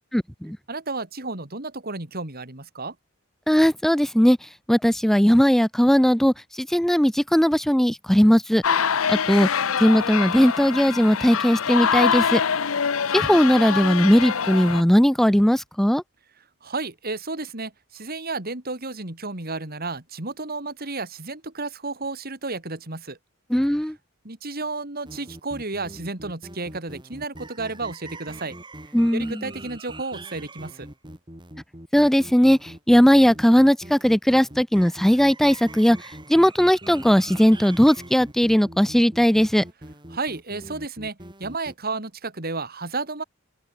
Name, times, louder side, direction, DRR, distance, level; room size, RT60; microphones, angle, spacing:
voice 1, 0.1-0.6 3.5-4.4 4.7-8.6 9.1-9.5 9.8-12.4 13.1-16.0 23.5-23.9 28.9-29.4 31.9-32.6 32.9-36.0 36.3-39.6, equal, ahead, 0.3 m, -18 dB
voice 2, 0.7-2.9 16.6-23.2 24.2-28.6 29.1-30.9 40.1-43.2, right 3 dB, 45° right, 3.1 m, -32 dB
sound 1, 8.6-14.8, left 7 dB, 70° left, 0.8 m, -24 dB
sound 2, 25.0-41.7, right 1 dB, 20° right, 7.3 m, -42 dB
open air
head